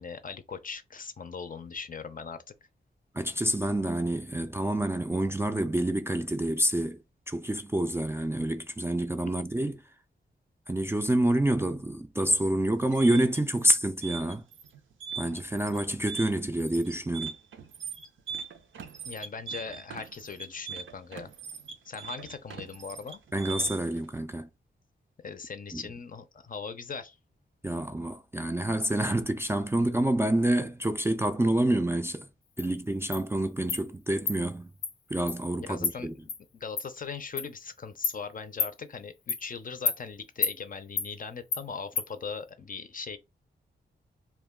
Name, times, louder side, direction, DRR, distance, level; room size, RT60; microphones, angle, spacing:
voice 1, 0.0-2.5 19.1-21.3 21.9-23.2 25.2-27.2 35.6-43.2, left 5 dB, 45° left, 0.5 m, -40 dB
voice 2, 3.1-7.0 7.3-9.8 10.7-14.4 15.2-17.3 23.3-24.5 25.7-25.8 27.6-32.2 32.6-34.7 35.1-36.1, right 1 dB, 10° right, 0.3 m, -27 dB
sound 1, 12.7-24.0, right 6 dB, 80° right, 0.5 m, -41 dB
Insect, 32.6-32.7 33.1-33.2 33.7-33.8 34.3-34.4 34.8-34.9 35.3-35.4 35.8-35.9 36.3-36.4 36.8-36.9 37.4-37.5 38.0-38.2 38.6-38.7 39.3-39.4 39.9-40.0 40.4-40.6 41.0-41.1 41.5-41.6 42.0-42.1, left 5 dB, 85° left, 0.7 m, -29 dB
2.2 x 2.2 x 3.5 m
cardioid pair, 55°, 20 cm